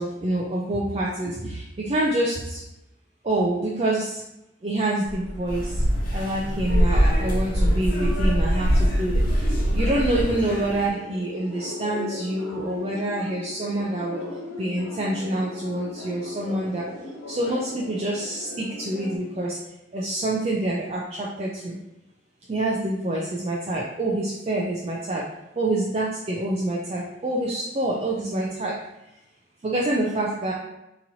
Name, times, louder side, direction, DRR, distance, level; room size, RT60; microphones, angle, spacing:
voice 1, 0.0-2.6 3.2-4.2 4.6-5.8 6.1-14.2 14.6-16.9 17.3-19.6 19.9-21.8 22.5-25.2 25.6-28.8 29.6-30.5, right 1 dB, 30° right, -4 dB, 0.4 m, -26 dB
sound 1, 5.1-10.2, equal, 90° right, 0.6 m, -22 dB
sound 2, 5.5-10.9, left 1 dB, 45° left, 0.7 m, -33 dB
sound 3, 9.2-19.2, left 2 dB, 80° left, 1.0 m, -38 dB
4.0 x 2.9 x 2.7 m, 0.90 s
head